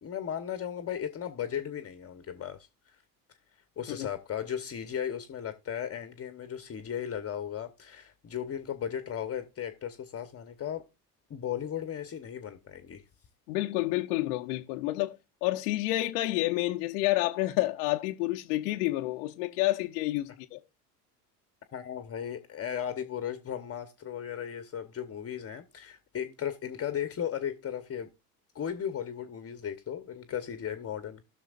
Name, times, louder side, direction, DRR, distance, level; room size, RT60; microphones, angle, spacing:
voice 1, 0.0-3.0 3.8-10.9 11.3-13.0 21.7-28.1 28.5-31.2, left 9 dB, 30° left, 1.0 m, -36 dB
voice 2, 13.5-15.2 15.4-20.6, left 18 dB, 70° left, 0.8 m, -29 dB
18.0 x 6.2 x 2.5 m
hypercardioid pair, 75°, 47 cm